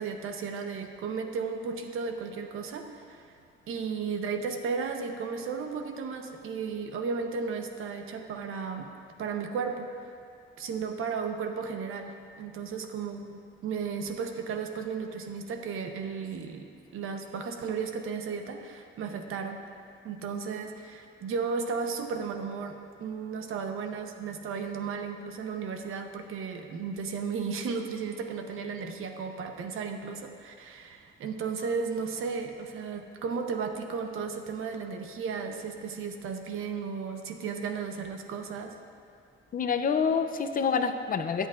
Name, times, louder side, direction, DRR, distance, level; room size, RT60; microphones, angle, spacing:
voice 1, 0.0-3.3 3.7-8.9 9.2-9.9 10.6-13.3 13.6-16.7 16.9-19.6 20.0-38.8, right 5 dB, 80° right, 5 dB, 0.9 m, -34 dB
voice 2, 39.5-41.5, left 6 dB, 45° left, 8 dB, 0.6 m, -27 dB
23.0 x 8.1 x 2.5 m, 2.4 s
cardioid pair, 155°, 21 cm